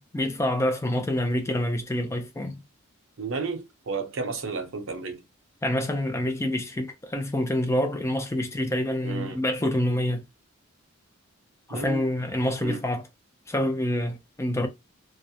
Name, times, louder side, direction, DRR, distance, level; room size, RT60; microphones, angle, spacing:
voice 1, 0.0-2.6 5.6-10.3 11.7-13.0 13.5-14.7, left 1 dB, 10° left, 0.3 m, -27 dB
voice 2, 3.2-5.2 9.0-9.4 11.7-12.1 12.6-12.8, right 4 dB, 65° right, 0.6 m, -32 dB
2.3 x 2.0 x 2.6 m
head